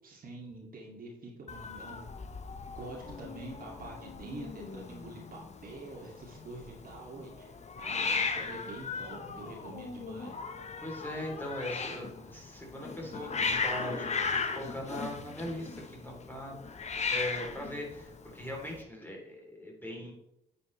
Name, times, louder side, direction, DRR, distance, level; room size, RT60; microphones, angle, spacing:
voice 1, 0.0-2.1 2.7-10.4, right 2 dB, 45° right, -2 dB, 2.5 m, -46 dB
Hiss, 1.5-18.8, left 5 dB, 35° left, 1.0 m, -37 dB
voice 2, 10.8-20.1, left 1 dB, 10° left, -2 dB, 3.4 m, -40 dB
9.7 x 6.9 x 3.3 m, 0.83 s
hypercardioid pair, 50°, 21 cm